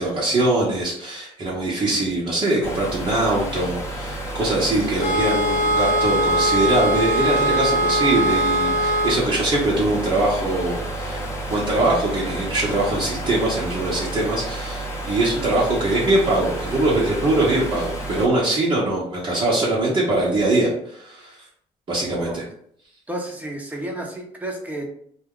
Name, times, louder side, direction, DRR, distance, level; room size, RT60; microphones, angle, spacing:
voice 1, 0.0-11.2 11.5-21.4 21.9-22.4, right 2 dB, 40° right, -6 dB, 0.9 m, -22 dB
sound 1, 2.6-18.3, right 1 dB, 20° left, 0.8 m, -31 dB
sound 2, 5.0-9.2, right 1 dB, 65° left, 0.8 m, -21 dB
voice 2, 23.1-24.8, right 1 dB, 10° right, 0 dB, 0.8 m, -31 dB
2.3 x 2.1 x 3.6 m, 0.65 s
cardioid pair, 85°, 14 cm